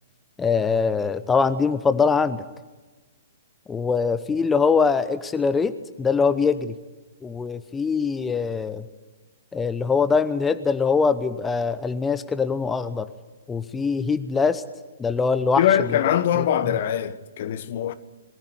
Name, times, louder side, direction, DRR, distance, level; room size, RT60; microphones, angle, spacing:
voice 1, 0.4-2.4 3.7-5.7 6.0-6.7 7.2-8.8 9.5-13.1 13.5-14.6 15.0-15.6, left 5 dB, 10° left, 0.8 m, -22 dB
voice 2, 15.6-17.9, left 10 dB, 50° left, 1.3 m, -22 dB
23.5 x 15.0 x 9.4 m
figure-of-eight pair, 115°, 0 cm